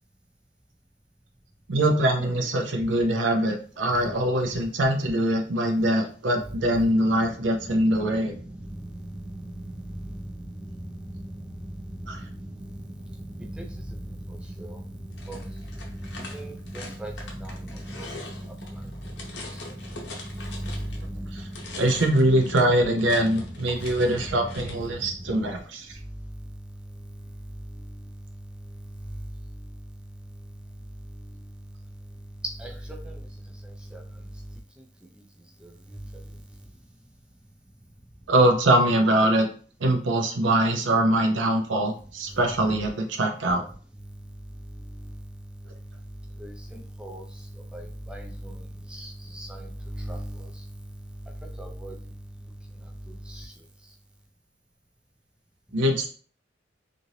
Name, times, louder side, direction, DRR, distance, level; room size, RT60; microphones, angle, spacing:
voice 1, 1.7-8.4 12.1-12.2 21.3-21.4 21.8-25.9 38.3-39.5 39.8-43.6 55.7-56.1, right 1 dB, 75° right, 4 dB, 0.6 m, -23 dB
sound 1, 6.5-25.4, right 1 dB, 20° right, 1.0 m, -41 dB
sound 2, 15.1-21.1 21.4-24.9, left 3 dB, 65° left, 0.7 m, -42 dB
voice 2, 16.3-17.1 17.4-17.6 18.0-18.1 32.6-32.7 33.0-33.2 33.9-34.0 46.4-47.2 47.7-48.6 48.9-50.5 51.6-52.0 53.3-53.5, right 1 dB, 5° right, 1 dB, 0.3 m, -38 dB
3.0 x 2.6 x 2.7 m, 0.43 s
head